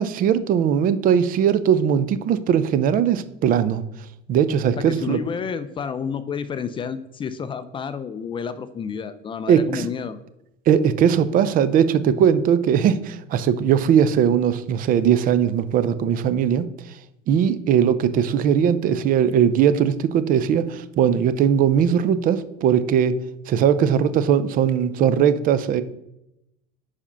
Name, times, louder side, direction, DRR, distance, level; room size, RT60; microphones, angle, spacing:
voice 1, 0.0-3.8 4.3-5.2 9.5-9.9 10.7-16.7 17.3-23.2 23.5-25.8, right 8 dB, 45° right, 14 dB, 0.5 m, -19 dB
voice 2, 4.8-10.2, left 6 dB, 25° left, 12 dB, 0.4 m, -30 dB
4.9 x 4.3 x 5.6 m, 0.86 s
supercardioid pair, 115°, 20 cm